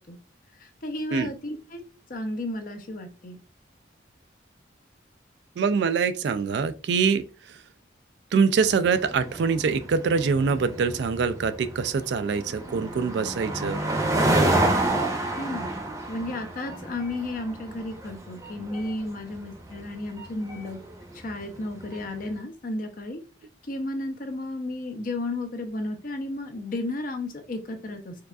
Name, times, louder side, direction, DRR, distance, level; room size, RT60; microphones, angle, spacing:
voice 1, 0.6-1.8 2.1-3.4 15.4-15.7 16.1-20.8 21.1-23.2 23.7-28.1, left 2 dB, 45° left, 0.6 m, -33 dB
voice 2, 5.6-7.6 8.3-13.8, right 5 dB, 60° right, 0.3 m, -24 dB
sound 1, 8.6-22.1, right 1 dB, 15° right, 0.7 m, -29 dB
4.6 x 2.5 x 2.3 m
head